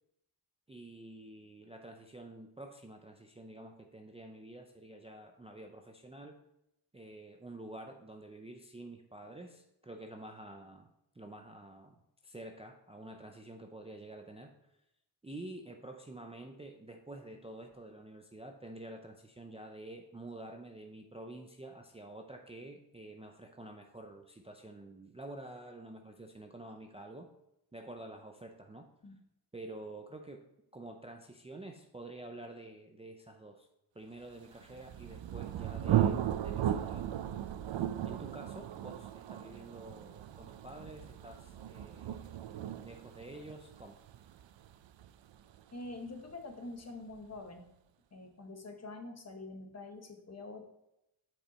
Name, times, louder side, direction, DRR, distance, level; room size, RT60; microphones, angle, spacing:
voice 1, 0.7-6.3 6.9-10.9 11.1-12.0 12.2-14.5 15.2-27.3 27.7-28.9 29.5-30.4 30.7-33.7 33.9-37.1 37.7-42.5 42.8-44.0, right 1 dB, 15° right, 3 dB, 0.5 m, -49 dB
Thunder, 34.6-46.1, right 11 dB, 80° right, 0.5 m, -36 dB
voice 2, 45.7-47.6 48.1-50.7, left 2 dB, 35° left, 4 dB, 1.0 m, -45 dB
7.5 x 5.3 x 4.1 m, 0.86 s
wide cardioid pair, 140°, 44 cm